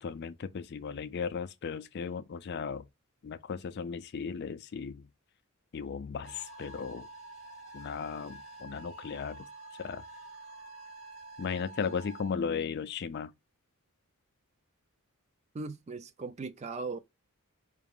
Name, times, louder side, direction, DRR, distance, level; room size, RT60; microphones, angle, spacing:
voice 1, 0.0-2.8 3.2-5.1 5.7-7.1 7.7-9.5 9.8-10.0 11.4-13.3, left 6 dB, 50° left, 0.4 m, -36 dB
sound 1, 6.2-12.3, right 2 dB, 75° right, 1.8 m, -48 dB
voice 2, 15.5-17.0, right 4 dB, 30° right, 0.4 m, -38 dB
4.8 x 2.4 x 3.6 m
head